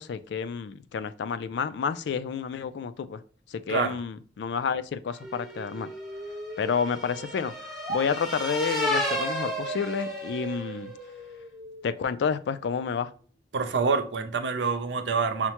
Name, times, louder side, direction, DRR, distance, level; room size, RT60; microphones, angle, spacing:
voice 1, 0.0-3.2 3.5-5.9 6.6-7.5 7.9-10.9 11.8-13.1, left 6 dB, 70° left, 13 dB, 0.3 m, -30 dB
sound 1, 5.2-8.0 9.1-12.1, right 1 dB, 35° right, 0.9 m, -39 dB
sound 2, 5.3-10.8, equal, ahead, 1.0 m, -33 dB
voice 2, 13.5-15.5, right 5 dB, 75° right, 8 dB, 0.5 m, -26 dB
5.7 x 2.1 x 2.8 m, 0.43 s
head